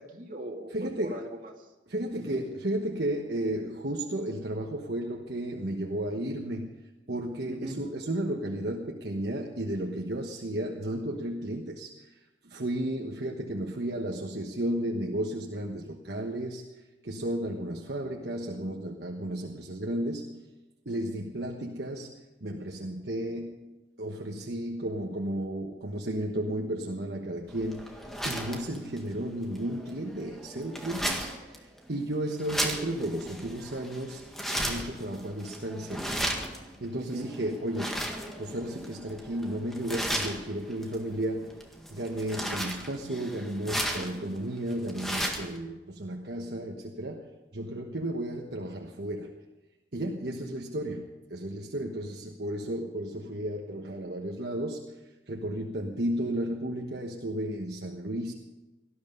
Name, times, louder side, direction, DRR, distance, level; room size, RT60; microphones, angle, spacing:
voice 1, 0.0-1.7 2.1-2.4 7.5-7.8 37.0-37.2, right 1 dB, 45° right, 1 dB, 2.4 m, -40 dB
voice 2, 0.7-1.2 1.9-6.7 7.1-16.6 17.0-20.4 20.8-23.7 24.0-28.0 28.2-36.1 36.4-36.5 36.8-38.1 38.4-41.6 41.9-49.3 49.9-54.8 55.3-58.3, right 1 dB, 60° right, 1 dB, 1.3 m, -33 dB
sound 1, 27.5-45.6, equal, ahead, 1.8 m, -36 dB
18.5 x 13.5 x 5.4 m, 1.1 s
head